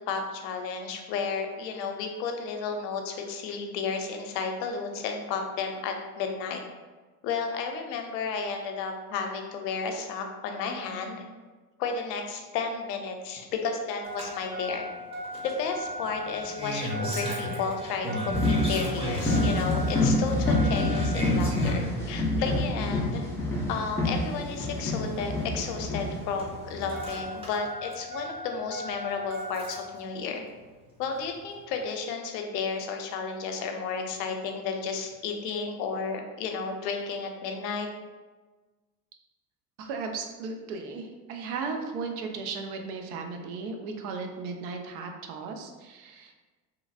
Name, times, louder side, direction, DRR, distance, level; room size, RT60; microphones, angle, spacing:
voice 1, 0.0-6.6 7.2-11.2 11.8-14.9 15.4-23.2 23.7-30.4 31.0-37.9, left 5 dB, 75° left, 4 dB, 0.6 m, -32 dB
Engine starting, 14.0-30.0 31.2-31.3, equal, 10° right, 0.8 m, -36 dB
sound 1, 18.3-26.2, left 1 dB, 5° left, 0.3 m, -27 dB
voice 2, 39.8-46.3, right 4 dB, 65° right, 4 dB, 0.6 m, -36 dB
2.9 x 2.5 x 2.4 m, 1.3 s
hypercardioid pair, 80°, 50 cm